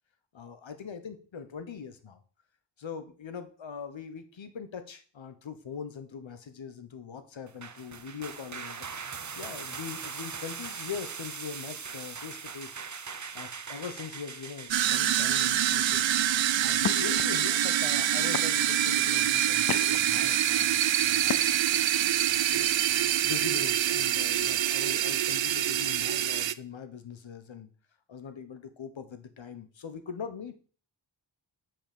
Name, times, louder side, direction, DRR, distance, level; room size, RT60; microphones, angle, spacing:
voice 1, 0.3-2.2 2.8-8.9 9.3-12.8 13.3-16.1 16.6-21.5 22.2-27.7 28.1-30.5, left 6 dB, 90° left, 9 dB, 1.1 m, -41 dB
sound 1, 7.5-17.1, right 6 dB, 40° right, 0.7 m, -41 dB
sound 2, 14.7-26.5, right 11 dB, 80° right, 0.5 m, -26 dB
sound 3, 15.9-16.2 16.8-17.2 17.9-18.0 18.3-18.8 19.3-20.2 21.2-21.8, left 7 dB, 50° left, 0.6 m, -34 dB
5.9 x 5.6 x 6.8 m, 0.40 s
wide cardioid pair, 70°, 44 cm